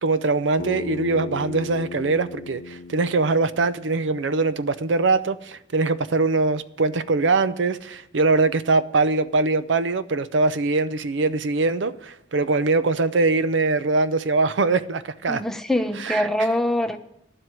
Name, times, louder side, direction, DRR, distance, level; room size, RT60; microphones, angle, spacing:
voice 1, 0.0-15.4 16.0-16.3, right 3 dB, 70° right, 0.6 m, -22 dB
Bass guitar, 0.6-4.9, left 3 dB, 70° left, 0.9 m, -37 dB
voice 2, 15.3-17.0, left 1 dB, ahead, 0.9 m, -23 dB
11.5 x 7.8 x 9.2 m
head